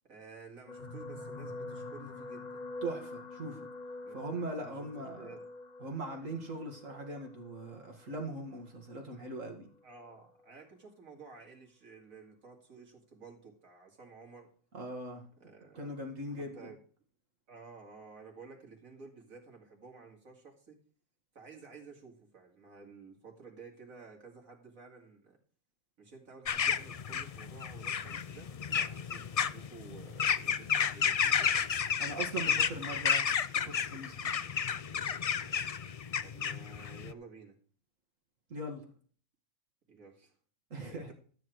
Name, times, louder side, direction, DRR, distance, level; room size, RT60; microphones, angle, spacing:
voice 1, 0.1-2.6 4.0-4.3 4.6-4.9 5.1-5.4 9.8-14.5 15.4-16.0 16.3-16.8 17.5-20.8 21.3-25.4 26.0-31.7 36.2-37.6 39.9-40.3 40.9-41.1, right 4 dB, 85° right, 0 dB, 3.0 m, -53 dB
sound 1, 0.7-9.1 9.9-10.1 10.4-10.5, left 2 dB, 35° left, 1.2 m, -46 dB
voice 2, 2.8-3.7 4.1-5.3 5.8-9.7 14.7-15.3 15.7-16.7 32.0-34.4 38.5-38.9 40.7-41.1, right 2 dB, 70° right, 2 dB, 2.3 m, -40 dB
sound 2, 26.4-37.1, left 7 dB, 70° left, 0.3 m, -32 dB
13.0 x 8.4 x 4.7 m, 0.44 s
omnidirectional pair, 1.4 m